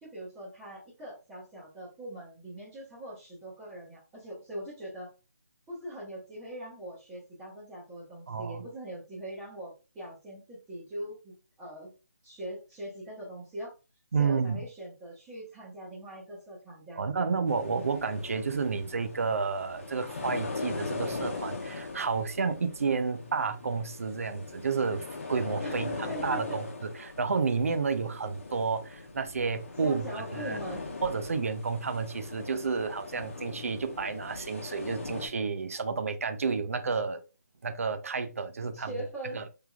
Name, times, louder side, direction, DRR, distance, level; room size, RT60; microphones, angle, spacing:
voice 1, 0.0-5.1 5.7-11.9 12.2-13.7 14.2-17.3 25.6-26.6 29.8-30.9 38.7-39.4, right 1 dB, 10° right, 1.0 m, -42 dB
voice 2, 8.3-8.7 14.1-14.6 17.0-25.9 26.2-26.7 27.0-30.0 30.3-30.6 31.0-37.2 37.6-39.0 39.3-39.5, right 5 dB, 55° right, 0.6 m, -31 dB
sound 1, 17.5-35.3, left 3 dB, 45° left, 1.0 m, -40 dB
3.6 x 3.2 x 2.3 m
figure-of-eight pair, 165°, 9 cm